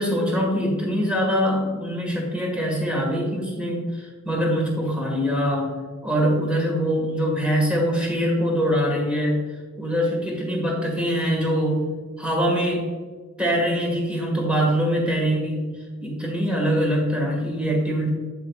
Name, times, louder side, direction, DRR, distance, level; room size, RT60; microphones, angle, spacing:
voice 1, 0.0-5.7 6.0-9.4 9.8-11.9 12.2-12.8 13.4-18.1, equal, 5° right, -2 dB, 1.6 m, -23 dB
8.6 x 7.4 x 2.4 m, 1.5 s
head